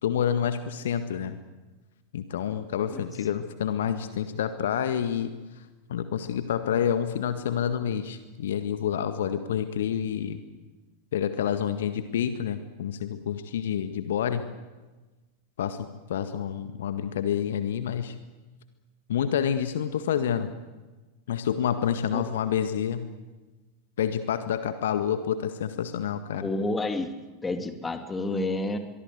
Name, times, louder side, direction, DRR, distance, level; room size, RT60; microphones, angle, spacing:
voice 1, 0.0-1.4 2.1-5.3 5.9-10.4 11.1-14.5 15.6-15.8 16.1-18.1 19.1-20.5 21.3-23.1 24.0-26.5, left 9 dB, 60° left, 10 dB, 1.6 m, -28 dB
voice 2, 26.4-27.1 27.4-28.8, left 2 dB, 15° left, 7 dB, 2.5 m, -29 dB
23.5 x 23.5 x 8.2 m, 1.2 s
figure-of-eight pair, 90°, 0 cm